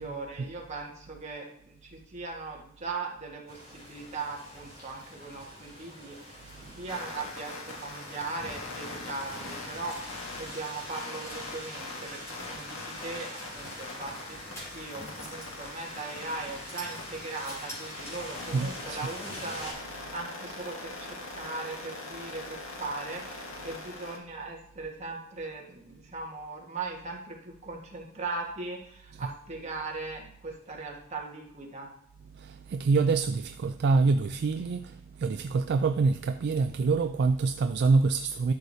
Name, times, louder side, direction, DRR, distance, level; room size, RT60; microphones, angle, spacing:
voice 1, 0.0-6.4 6.7-14.4 14.7-31.9, right 3 dB, 35° right, 1.5 m, -39 dB
sound 1, 3.5-19.7, left 1 dB, 30° left, 3.4 m, -45 dB
sound 2, 6.9-24.2, left 2 dB, 75° left, 1.7 m, -42 dB
sound 3, 11.2-11.7 12.0-12.4 12.9-13.9 14.6-15.6 16.0-16.2 16.7-18.4, equal, 15° left, 3.6 m, -48 dB
voice 2, 18.5-19.0 29.1-29.3 32.3-38.5, right 4 dB, 55° right, 0.3 m, -26 dB
12.0 x 6.5 x 2.7 m
head